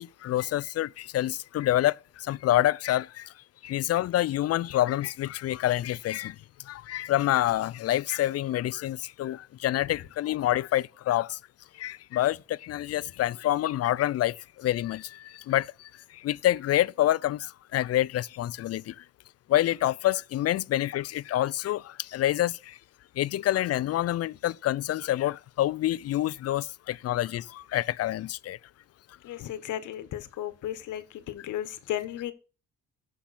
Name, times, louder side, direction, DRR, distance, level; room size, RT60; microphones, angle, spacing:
voice 1, 0.0-3.3 3.6-6.4 6.7-11.4 11.7-19.0 19.5-22.8 23.2-28.6, left 14 dB, 55° left, 0.4 m, -27 dB
voice 2, 29.2-32.3, left 12 dB, 80° left, 1.2 m, -35 dB
14.5 x 5.8 x 4.1 m
cardioid pair, 90°, 30 cm